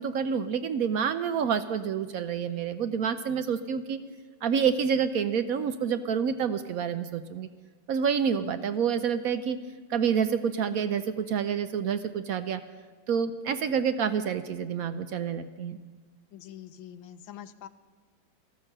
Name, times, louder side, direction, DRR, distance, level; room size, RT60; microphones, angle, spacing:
voice 1, 0.0-4.0 4.4-7.5 7.9-9.6 9.9-12.6 13.1-15.8, right 7 dB, 70° right, 10 dB, 0.8 m, -28 dB
voice 2, 8.3-8.6 16.3-17.7, left 10 dB, 80° left, 11 dB, 1.5 m, -45 dB
13.5 x 13.0 x 6.6 m, 1.4 s
omnidirectional pair, 2.1 m